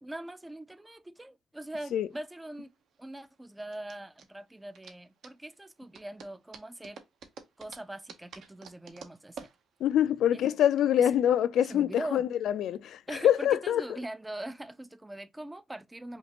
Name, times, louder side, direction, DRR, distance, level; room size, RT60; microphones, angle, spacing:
voice 1, 0.0-2.7 3.0-7.0 7.6-9.5 10.3-10.6 11.0-11.1 11.6-12.3 13.1-16.2, right 1 dB, 10° right, 0.4 m, -42 dB
sound 1, 1.9-10.8, right 6 dB, 70° right, 0.8 m, -51 dB
voice 2, 9.8-14.0, left 10 dB, 85° left, 0.3 m, -25 dB
5.1 x 2.4 x 2.9 m
cardioid pair, 155°, 0 cm